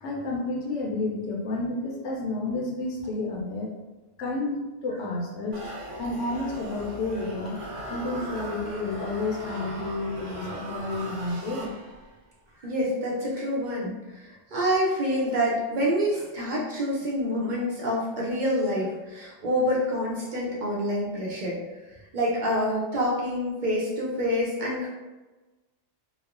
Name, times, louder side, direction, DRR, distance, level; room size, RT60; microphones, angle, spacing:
voice 1, 0.0-3.7 4.2-5.6 6.0-7.6 7.9-11.7, left 2 dB, 85° left, -2 dB, 0.9 m, -30 dB
sound 1, 5.5-12.1, right 1 dB, 90° right, 1.1 m, -38 dB
voice 2, 12.6-21.6 22.1-24.9, equal, 55° right, -5 dB, 0.6 m, -27 dB
3.1 x 2.0 x 2.4 m, 1.2 s
omnidirectional pair, 1.2 m